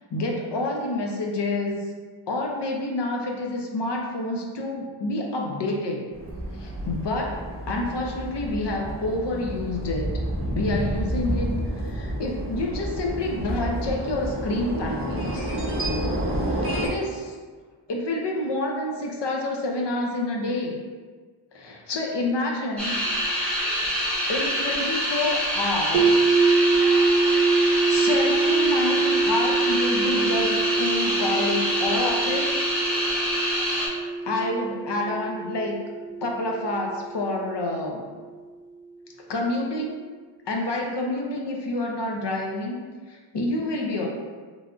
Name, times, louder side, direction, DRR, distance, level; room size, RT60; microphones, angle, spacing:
voice 1, 0.1-1.8 2.3-6.1 6.5-7.4 7.7-10.1 10.6-15.5 16.8-17.3 17.9-20.8 21.5-22.9 24.3-26.1 27.8-32.5 34.0-35.7 36.2-38.0 39.3-40.0 40.5-42.8 43.1-44.1, left 2 dB, 55° left, 0 dB, 0.6 m, -28 dB
sound 1, 6.1-16.9, right 1 dB, 25° right, 0.8 m, -29 dB
sound 2, 22.8-33.9, equal, ahead, 0.8 m, -26 dB
sound 3, 25.9-37.9, right 4 dB, 80° right, 0.5 m, -24 dB
3.2 x 2.4 x 2.4 m, 1.5 s
wide cardioid pair, 70°, 50 cm